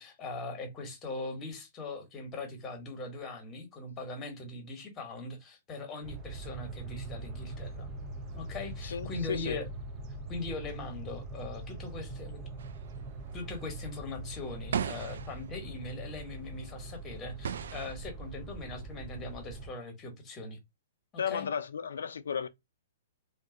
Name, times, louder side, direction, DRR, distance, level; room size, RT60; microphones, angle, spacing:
voice 1, 0.0-7.9 8.3-9.7 10.3-12.4 13.3-20.6 21.1-21.5, left 3 dB, 15° left, 1.2 m, -41 dB
sound 1, 6.0-19.7, right 2 dB, 30° right, 0.6 m, -42 dB
voice 2, 8.8-9.6 21.2-22.5, left 7 dB, 85° left, 0.4 m, -34 dB
sound 2, 12.6-16.1 16.9-17.0 17.4-18.0, right 8 dB, 75° right, 0.3 m, -37 dB
2.6 x 2.3 x 3.7 m
hypercardioid pair, 150°, 0 cm